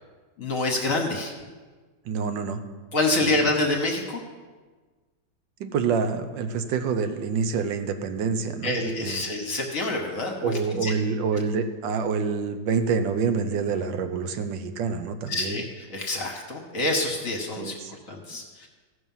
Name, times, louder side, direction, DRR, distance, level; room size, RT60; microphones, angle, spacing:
voice 1, 0.4-1.3 2.9-4.2 8.6-10.9 15.3-18.7, left 2 dB, 50° left, 1 dB, 1.4 m, -27 dB
voice 2, 2.1-2.6 3.2-3.3 5.6-9.2 10.4-15.6 17.6-17.9, right 5 dB, 85° right, 9 dB, 1.5 m, -27 dB
15.0 x 6.0 x 5.5 m, 1.4 s
omnidirectional pair, 2.0 m